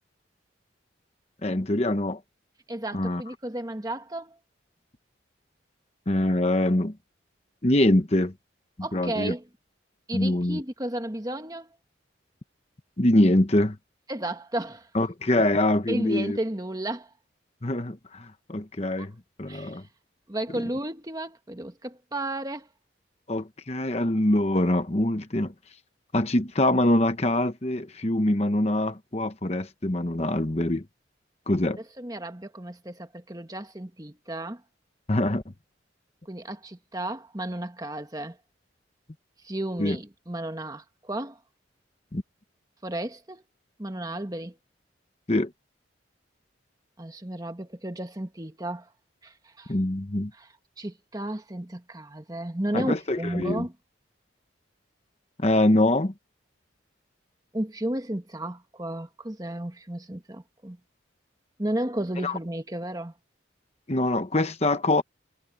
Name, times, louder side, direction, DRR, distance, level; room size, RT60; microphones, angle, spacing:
voice 1, 1.4-2.2 2.9-3.2 6.1-7.0 7.6-8.3 8.9-9.3 10.1-10.6 13.0-13.8 14.9-16.4 17.6-19.1 19.4-19.8 20.5-20.6 23.3-25.5 26.1-30.9 31.5-31.8 35.1-35.4 39.8-40.0 42.1-42.2 45.3-45.5 49.7-50.3 52.7-53.6 55.4-56.1 62.2-62.4 63.9-65.0, left 1 dB, 35° left, 1.0 m, -24 dB
voice 2, 2.7-4.4 8.8-9.4 10.1-11.7 14.1-14.9 15.9-17.1 19.5-19.8 20.3-22.7 32.0-34.6 36.3-38.4 39.4-41.4 42.8-43.4 43.8-44.6 47.0-48.9 49.2-49.7 50.3-50.5 50.8-53.7 57.5-60.8 61.6-63.1, right 1 dB, 20° right, 1.4 m, -33 dB
head